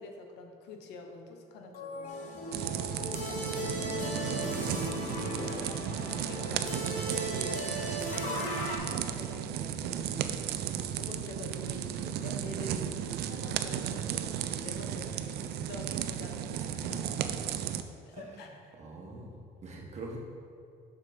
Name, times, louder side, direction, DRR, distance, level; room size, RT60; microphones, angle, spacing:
voice 1, 0.0-2.4 3.1-10.5 10.9-17.0 18.1-18.6, left 3 dB, 85° left, 3 dB, 1.0 m, -47 dB
sound 1, 1.7-6.4, left 3 dB, 60° left, 1.0 m, -41 dB
sound 2, 2.1-8.8, right 1 dB, 45° left, 2.0 m, -38 dB
voice 2, 2.4-2.8 16.6-17.5 18.1-20.2, right 2 dB, 40° right, -2 dB, 1.6 m, -46 dB
sound 3, 2.5-17.8, right 10 dB, 70° right, 0.5 m, -34 dB
6.7 x 6.2 x 5.2 m, 2.4 s
cardioid pair, 110°, 17 cm